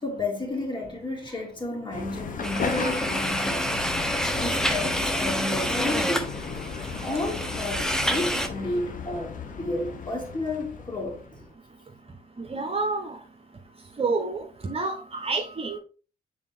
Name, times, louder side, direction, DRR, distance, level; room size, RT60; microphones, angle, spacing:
voice 1, 0.0-3.9 4.3-6.4 7.0-11.2, left 2 dB, 25° left, 2.8 m, -32 dB
sound 1, 1.9-11.5, left 5 dB, 45° left, 1.2 m, -35 dB
sound 2, 2.4-8.5, equal, 5° left, 1.0 m, -28 dB
voice 2, 12.4-13.2 14.0-15.8, right 3 dB, 30° right, 1.1 m, -29 dB
7.3 x 4.2 x 3.6 m
figure-of-eight pair, 45°, 19 cm